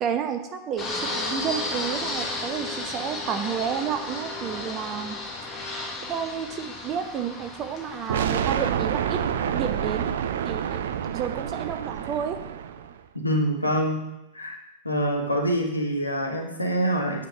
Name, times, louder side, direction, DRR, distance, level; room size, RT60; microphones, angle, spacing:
voice 1, 0.0-5.2 6.0-9.2 9.5-10.1 10.4-10.8 11.1-12.4, right 8 dB, 35° right, 6 dB, 1.0 m, -31 dB
Fixed-wing aircraft airplane, 0.8-8.3, left 2 dB, 20° left, 1.8 m, -33 dB
sound 1, 8.1-13.0, right 9 dB, 60° right, 0.5 m, -28 dB
voice 2, 13.1-14.0 14.3-14.6 14.8-17.3, equal, 85° left, 0 dB, 1.4 m, -25 dB
8.6 x 4.6 x 6.4 m, 0.93 s
figure-of-eight pair, 90°, 0 cm